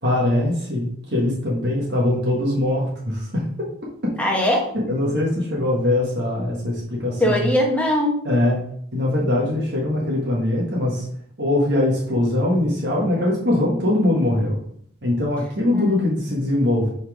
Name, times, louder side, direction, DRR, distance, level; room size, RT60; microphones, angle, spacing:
voice 1, 0.0-3.5 4.7-7.5 8.2-8.6 8.9-11.0 11.4-14.6 15.0-16.9, left 1 dB, 55° right, -4 dB, 1.5 m, -22 dB
voice 2, 4.2-4.7 7.2-8.2 15.7-16.2, left 1 dB, 5° left, -1 dB, 1.2 m, -21 dB
5.6 x 4.3 x 4.9 m, 0.65 s
head